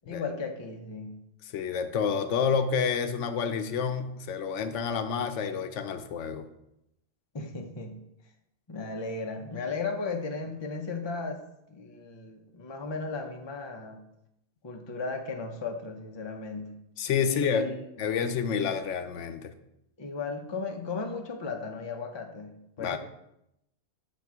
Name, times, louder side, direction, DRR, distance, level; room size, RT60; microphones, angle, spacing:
voice 1, 0.0-1.1 7.3-8.0 8.7-11.4 11.7-14.0 14.6-16.7 17.2-17.8 20.0-23.0, left 4 dB, 30° left, 4 dB, 0.5 m, -35 dB
voice 2, 1.5-6.5 17.0-17.7 18.0-19.5 22.8-23.0, left 6 dB, 80° left, 9 dB, 0.9 m, -29 dB
6.4 x 4.3 x 4.6 m, 0.83 s
omnidirectional pair, 1.2 m